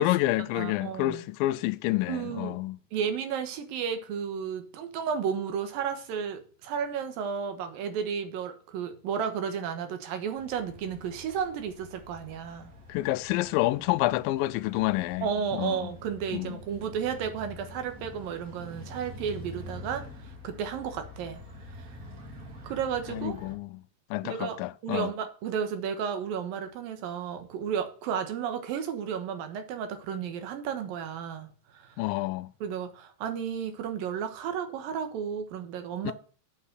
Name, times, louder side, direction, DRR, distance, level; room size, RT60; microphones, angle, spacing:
voice 1, 0.0-2.8 12.9-15.3 15.6-15.9 16.3-16.6 23.1-23.8 24.1-25.1 32.0-32.5 36.0-36.1, left 17 dB, 80° left, 2.3 m, -28 dB
voice 2, 0.5-1.2 2.1-2.6 2.9-12.7 15.2-21.4 21.7-21.9 22.6-23.4 24.2-32.0 32.6-36.1, right 7 dB, 80° right, 3.0 m, -33 dB
sound 1, 10.3-23.6, left 1 dB, 30° right, 1.8 m, -46 dB
8.9 x 5.6 x 7.9 m
omnidirectional pair, 4.1 m